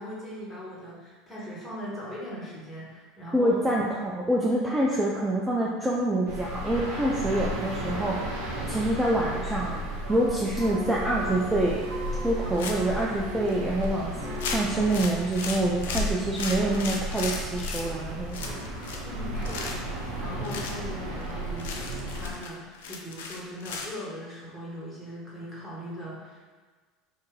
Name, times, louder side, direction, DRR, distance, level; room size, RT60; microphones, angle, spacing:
voice 1, 0.0-3.6 19.0-26.4, equal, 15° left, -7 dB, 1.3 m, -40 dB
voice 2, 3.3-8.4 8.7-11.8 12.2-14.1 14.4-18.4, right 1 dB, 10° right, -4 dB, 0.4 m, -26 dB
sound 1, 6.3-22.3, equal, 65° right, 0.7 m, -34 dB
sound 2, 12.6-13.0 13.5-13.6 13.8-14.0 14.4-17.8 18.3-19.1 19.4-19.9 20.4-20.7 21.2-21.3 21.6-23.9, left 4 dB, 70° left, 0.4 m, -35 dB
2.6 x 2.6 x 3.7 m, 1.4 s
hypercardioid pair, 75°, 0 cm